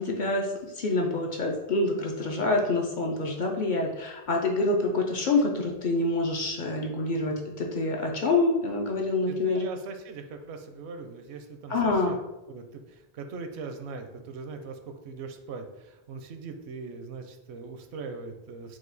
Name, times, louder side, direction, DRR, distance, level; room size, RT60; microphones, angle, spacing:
voice 1, 0.0-9.6 11.7-12.1, left 2 dB, 55° left, 1 dB, 0.6 m, -26 dB
voice 2, 9.3-12.2 12.5-18.8, right 4 dB, 75° right, 6 dB, 0.8 m, -40 dB
4.7 x 2.3 x 3.9 m, 0.98 s
omnidirectional pair, 1.1 m